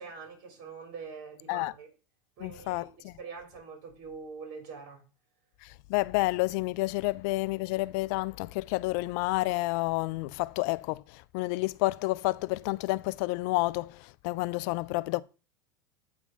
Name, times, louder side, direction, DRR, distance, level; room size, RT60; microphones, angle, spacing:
voice 1, 0.0-1.9 2.4-5.0, right 5 dB, 55° right, 3.3 m, -44 dB
voice 2, 2.4-2.8 5.9-11.0 11.3-15.2, left 21 dB, 60° left, 0.4 m, -29 dB
8.4 x 3.6 x 5.0 m
hypercardioid pair, 100°, 11 cm